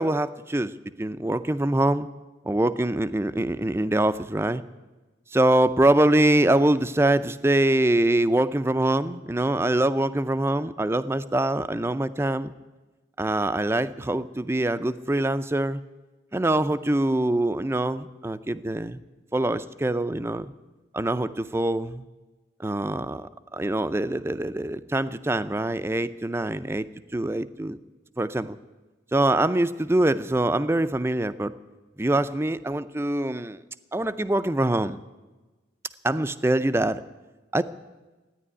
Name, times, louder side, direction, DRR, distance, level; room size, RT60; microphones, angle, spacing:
voice 1, 0.0-2.1 2.4-4.6 5.3-12.5 13.2-15.8 16.3-19.0 19.3-20.5 20.9-22.1 22.6-26.9 27.1-27.8 28.2-28.6 29.1-31.5 32.0-33.6 33.9-35.0 36.0-37.0 37.5-37.6, right 1 dB, 15° right, 13 dB, 0.4 m, -24 dB
14.0 x 10.0 x 9.9 m, 1.2 s
head